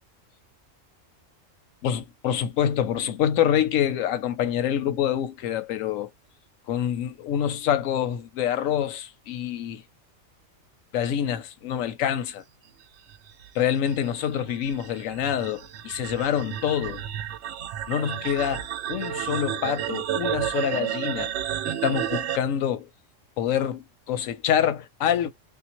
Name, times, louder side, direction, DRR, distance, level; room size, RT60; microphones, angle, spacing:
voice 1, 1.8-6.1 6.7-9.8 10.9-12.4 13.5-17.0 17.9-21.3 21.7-22.9 23.4-25.3, left 9 dB, 85° left, 1.0 m, -26 dB
sound 1, 13.1-22.4, right 11 dB, 65° right, 0.8 m, -31 dB
3.7 x 2.2 x 2.9 m
omnidirectional pair, 1.3 m